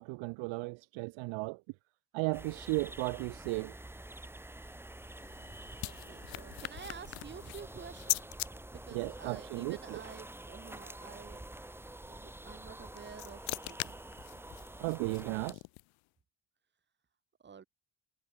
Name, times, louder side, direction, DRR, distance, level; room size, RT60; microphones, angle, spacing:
voice 1, 0.0-1.6 2.1-3.7 8.9-9.8 14.8-15.6, right 26 dB, 70° right, 0.6 m, -35 dB
sound 1, 2.3-15.5, right 1 dB, 5° right, 5.2 m, -48 dB
sound 2, 4.9-8.5 12.6-16.0, left 26 dB, 70° left, 0.7 m, -41 dB
voice 2, 5.8-8.2 8.7-11.4 12.1-14.4 17.4-17.7, right 6 dB, 20° right, 5.5 m, -50 dB
cardioid pair, 180°, 48 cm